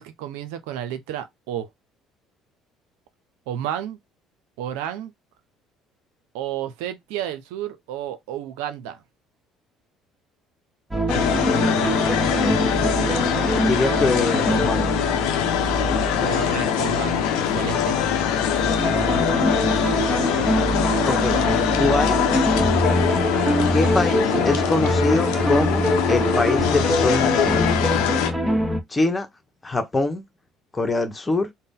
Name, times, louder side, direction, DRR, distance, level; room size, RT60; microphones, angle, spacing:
voice 1, 0.0-1.7 3.5-4.0 4.6-5.1 6.3-9.0 16.2-18.0, right 10 dB, 70° right, 0.5 m, -31 dB
sound 1, 10.9-28.8, equal, 10° right, 1.2 m, -24 dB
sound 2, 11.1-28.3, left 10 dB, 65° left, 0.8 m, -23 dB
voice 2, 11.3-12.6 13.5-14.9 19.0-19.3 21.0-21.4 21.7-22.2 23.7-25.8 26.1-27.7 28.9-29.3 29.6-30.2 30.7-31.5, left 3 dB, 20° left, 1.2 m, -24 dB
3.9 x 2.0 x 3.7 m
figure-of-eight pair, 55°, 0 cm